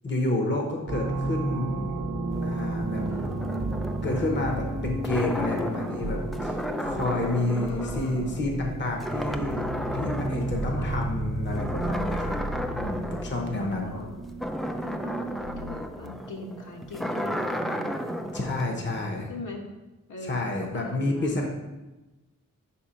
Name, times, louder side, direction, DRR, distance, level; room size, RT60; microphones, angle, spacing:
voice 1, 0.0-2.0 2.4-3.0 4.0-12.3 12.7-14.0 18.3-19.3 20.2-21.5, left 2 dB, 35° left, 1 dB, 0.9 m, -30 dB
sound 1, 0.9-15.9, right 2 dB, 60° right, 0.8 m, -33 dB
sound 2, 2.3-8.7 9.0-11.1 11.5-18.6, equal, ahead, 0.3 m, -34 dB
voice 2, 7.5-8.5 10.7-11.0 13.3-14.1 14.8-18.2 18.6-19.0 19.3-19.6 20.1-21.5, left 2 dB, 65° left, -1 dB, 1.1 m, -40 dB
5.2 x 4.3 x 5.1 m, 1.1 s
wide cardioid pair, 90°, 32 cm